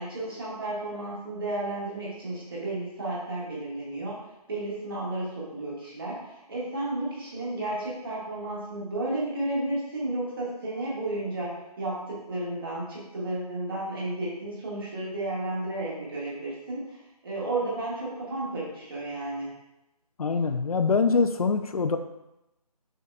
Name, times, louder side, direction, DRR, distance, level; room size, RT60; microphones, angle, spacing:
voice 1, 0.0-4.2 4.5-17.0 17.2-19.5, right 2 dB, 35° right, -6 dB, 1.6 m, -32 dB
voice 2, 20.2-22.0, left 4 dB, 65° left, 8 dB, 0.4 m, -24 dB
6.4 x 3.6 x 2.2 m, 0.92 s
figure-of-eight pair, 165°, 20 cm